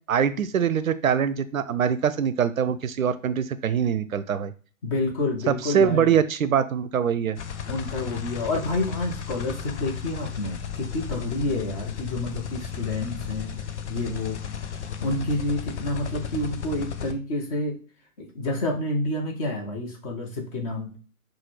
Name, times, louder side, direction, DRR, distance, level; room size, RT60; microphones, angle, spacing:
voice 1, 0.1-4.5 5.5-7.4, right 7 dB, 70° right, 13 dB, 0.5 m, -23 dB
voice 2, 4.8-6.2 7.7-13.6 13.9-14.5 15.0-17.8 18.2-21.0, left 2 dB, 25° left, 1 dB, 0.8 m, -29 dB
sound 1, 7.4-17.1, left 8 dB, 55° left, 0.6 m, -34 dB
5.7 x 2.2 x 3.1 m, 0.39 s
figure-of-eight pair, 120°, 43 cm